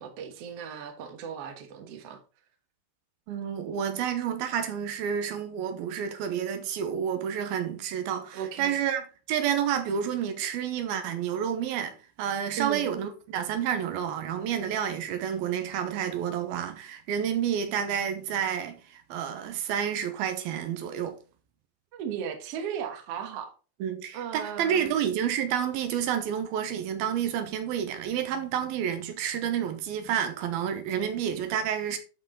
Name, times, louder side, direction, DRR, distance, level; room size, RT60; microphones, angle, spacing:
voice 1, 0.0-2.2 8.3-8.8 12.6-12.9 21.9-23.5 24.1-24.9, right 8 dB, 55° right, 1.9 m, -36 dB
voice 2, 3.3-21.2 23.8-32.0, right 9 dB, 85° right, 2.9 m, -30 dB
11.5 x 4.7 x 3.8 m
omnidirectional pair, 4.2 m